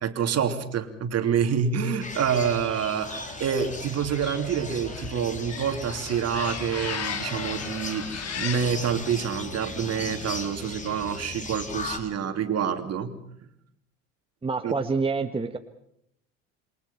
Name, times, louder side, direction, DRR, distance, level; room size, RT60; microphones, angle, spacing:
voice 1, 0.0-13.2 14.6-14.7, right 7 dB, 40° right, 7 dB, 3.0 m, -27 dB
sound 1, 2.0-12.0, left 2 dB, 20° left, 3.8 m, -37 dB
sound 2, 2.9-8.7, left 8 dB, 40° left, 2.4 m, -37 dB
voice 2, 14.4-15.6, right 4 dB, 15° right, 6 dB, 1.4 m, -27 dB
27.5 x 23.5 x 5.7 m, 0.73 s
hypercardioid pair, 70°, 38 cm